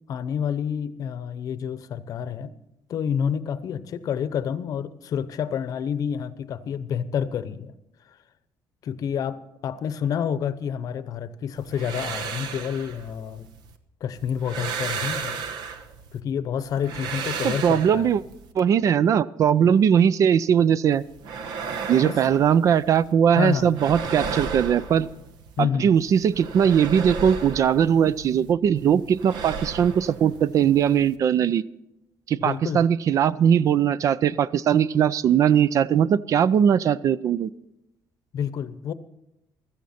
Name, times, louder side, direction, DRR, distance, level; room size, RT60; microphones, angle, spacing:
voice 1, 0.1-2.5 2.9-7.7 8.8-13.5 14.0-15.4 16.1-18.1 19.6-19.7 22.0-22.2 23.3-23.8 25.6-25.9 32.4-32.8 38.3-38.9, left 8 dB, 55° left, 14 dB, 0.8 m, -29 dB
sound 1, 11.6-13.8 14.2-16.2 16.6-18.5 20.9-23.1 23.4-25.6 26.0-28.5 28.8-31.2, right 5 dB, 75° right, 1.1 m, -34 dB
voice 2, 17.4-18.2 18.6-21.0 21.9-25.1 25.6-31.6 32.3-37.5, right 8 dB, 50° right, 18 dB, 0.4 m, -20 dB
15.5 x 13.5 x 4.3 m, 0.87 s
cardioid pair, 140°, 7 cm